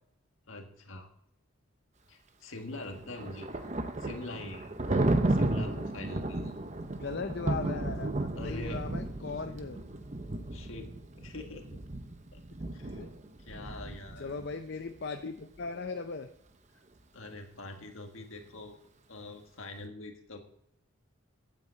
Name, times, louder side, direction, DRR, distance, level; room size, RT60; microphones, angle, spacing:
voice 1, 0.5-1.1 2.1-3.7 4.0-6.6 8.4-8.9 9.3-9.6 10.5-11.8 12.3-12.4 12.7-13.1 13.4-14.3 17.1-18.8 19.1-20.4, left 2 dB, 70° left, 4 dB, 1.7 m, -44 dB
Thunder, 2.7-14.5, right 2 dB, 35° right, 0.8 m, -33 dB
voice 2, 7.0-9.8 13.0-13.1 14.2-16.3, left 4 dB, 50° left, 6 dB, 0.6 m, -38 dB
15.5 x 8.8 x 3.9 m, 0.73 s
head